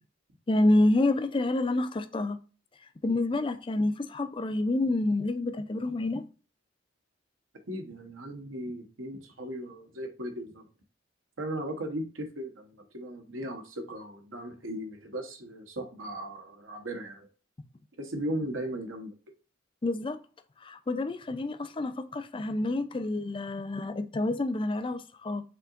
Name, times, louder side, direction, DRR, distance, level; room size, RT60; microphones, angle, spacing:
voice 1, 0.5-2.4 3.0-6.2 19.8-20.2 20.6-25.4, left 2 dB, 25° left, 0.4 m, -28 dB
voice 2, 7.7-10.6 11.4-17.3 18.0-19.1, right 1 dB, 75° right, 1.1 m, -37 dB
5.7 x 3.7 x 2.5 m
head